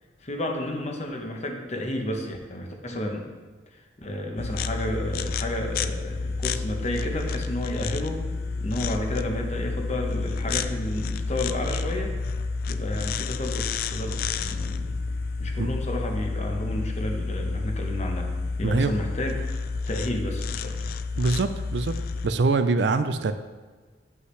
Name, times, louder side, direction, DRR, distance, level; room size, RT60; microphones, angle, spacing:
voice 1, 0.2-3.3 3.7-8.2 8.6-12.1 12.7-14.9 15.4-18.3 18.6-20.9, left 1 dB, 40° left, 2 dB, 0.9 m, -31 dB
sound 1, 4.4-22.3, left 4 dB, 55° left, 0.3 m, -30 dB
sound 2, 7.8-20.0, left 1 dB, 80° left, 0.7 m, -48 dB
voice 2, 18.6-18.9 21.2-22.0 22.2-23.3, right 3 dB, 75° right, 10 dB, 0.4 m, -23 dB
7.9 x 5.5 x 3.2 m, 1.4 s
head